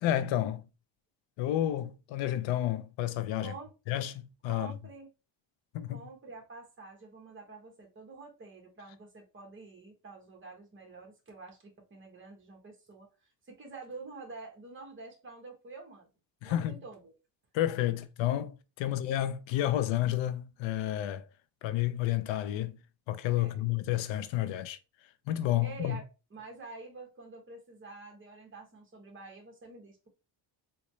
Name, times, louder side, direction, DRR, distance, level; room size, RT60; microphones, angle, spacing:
voice 1, 0.0-0.6 1.4-3.5 3.9-4.7 5.7-6.0 16.4-16.8 17.5-21.3 21.6-22.8 23.1-24.8 25.3-26.0, left 13 dB, 85° left, 0.5 m, -30 dB
voice 2, 3.4-3.7 4.5-5.1 5.9-13.1 13.5-16.1 16.4-17.1 17.9-18.0 18.8-19.0 23.4-23.6 25.6-26.0 26.3-30.1, right 3 dB, 25° right, 1.1 m, -48 dB
3.8 x 2.2 x 3.0 m
cardioid pair, 160°, 44 cm